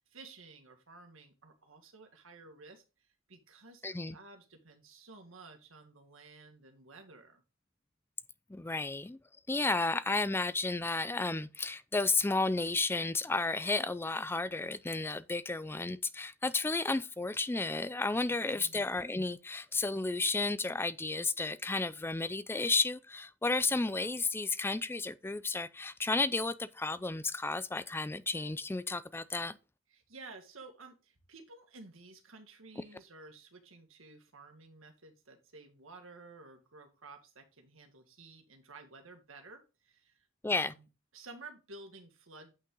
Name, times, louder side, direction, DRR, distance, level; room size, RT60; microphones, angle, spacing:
voice 1, 0.0-2.8 3.3-7.4 18.3-18.8 29.9-40.9 41.1-42.5, right 3 dB, 85° right, 1.8 m, -53 dB
voice 2, 3.8-4.2 8.5-9.2 9.5-29.6 40.4-40.7, left 3 dB, 10° left, 0.4 m, -32 dB
8.5 x 5.7 x 3.8 m
head